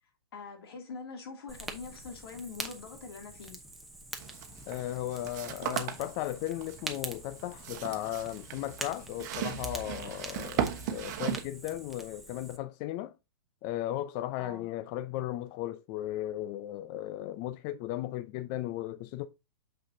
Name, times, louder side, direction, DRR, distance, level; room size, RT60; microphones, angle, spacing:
voice 1, 0.3-3.6 14.4-14.7, left 4 dB, 85° left, 2.5 m, -44 dB
Fire, 1.5-12.6, right 1 dB, ahead, 0.8 m, -45 dB
sound 1, 4.2-11.4, right 9 dB, 50° right, 1.0 m, -37 dB
voice 2, 4.7-13.1 13.6-19.3, left 14 dB, 35° left, 0.4 m, -36 dB
6.6 x 6.0 x 2.7 m
hypercardioid pair, 145°, 12 cm